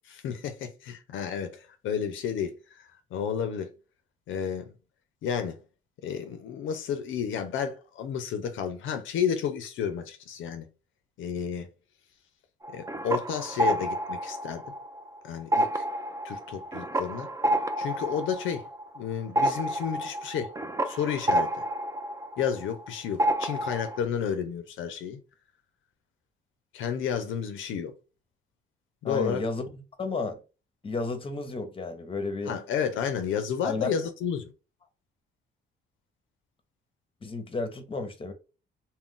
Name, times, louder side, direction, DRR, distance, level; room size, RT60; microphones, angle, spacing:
voice 1, 0.1-3.7 4.3-4.7 5.2-5.6 6.0-10.7 11.2-11.7 12.7-14.6 15.2-15.8 16.2-17.3 17.8-18.7 18.9-20.5 20.8-21.6 22.4-25.2 26.7-27.9 29.0-29.4 32.5-34.5, left 7 dB, 80° left, 0.5 m, -31 dB
sound 1, 12.6-15.1 15.4-22.9 23.2-24.0, right 1 dB, 15° right, 0.4 m, -29 dB
voice 2, 29.0-30.4 30.8-32.5 33.6-33.9 37.2-38.3, left 3 dB, 25° left, 0.8 m, -32 dB
2.4 x 2.1 x 3.6 m
cardioid pair, 90°, 20 cm